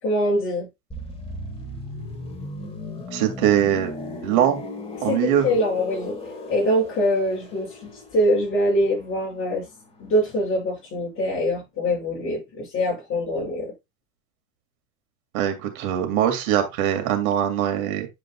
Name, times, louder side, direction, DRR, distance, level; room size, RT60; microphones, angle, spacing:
voice 1, 0.0-0.7 5.0-6.2 6.5-7.8 8.1-9.6 10.0-13.7, equal, 30° left, 5.4 m, -23 dB
sound 1, 0.9-10.6 10.8-11.1, left 2 dB, 15° left, 1.9 m, -37 dB
voice 2, 3.1-3.9 4.2-4.6 5.0-5.5 15.3-18.1, right 10 dB, 90° right, 2.4 m, -22 dB
10.0 x 5.4 x 2.3 m
supercardioid pair, 145°, 41 cm